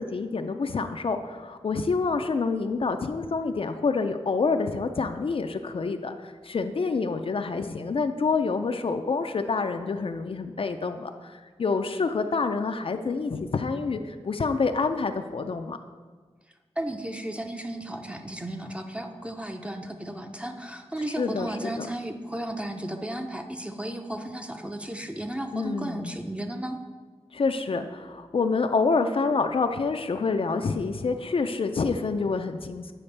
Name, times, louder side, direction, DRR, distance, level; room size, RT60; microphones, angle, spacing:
voice 1, 0.0-15.8 21.2-21.9 25.5-26.2 27.3-32.9, left 4 dB, 55° left, 7 dB, 0.4 m, -27 dB
voice 2, 16.8-26.8, right 1 dB, 10° right, 5 dB, 0.5 m, -34 dB
8.5 x 5.0 x 3.3 m, 1.5 s
wide cardioid pair, 80°, 12 cm